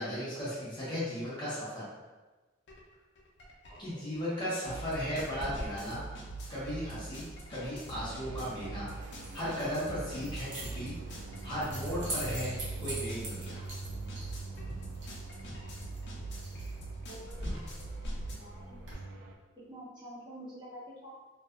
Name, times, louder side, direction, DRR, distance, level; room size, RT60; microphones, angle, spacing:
voice 1, 0.0-1.9 3.8-6.0 6.5-8.9 9.3-10.9 11.4-12.5 12.8-13.6, equal, 25° left, -10 dB, 0.7 m, -36 dB
sound 1, 2.7-2.8 3.2-18.3, right 2 dB, 60° left, 0.5 m, -44 dB
voice 2, 3.7-4.1 17.1-17.6 18.3-18.9 19.7-21.1, equal, 25° right, -11 dB, 1.0 m, -48 dB
Keys jangling, 5.1-18.9, right 1 dB, 75° right, 0.9 m, -44 dB
sound 2, 7.9-19.3, right 3 dB, 55° right, 0.3 m, -45 dB
2.6 x 2.2 x 2.4 m, 1.2 s
head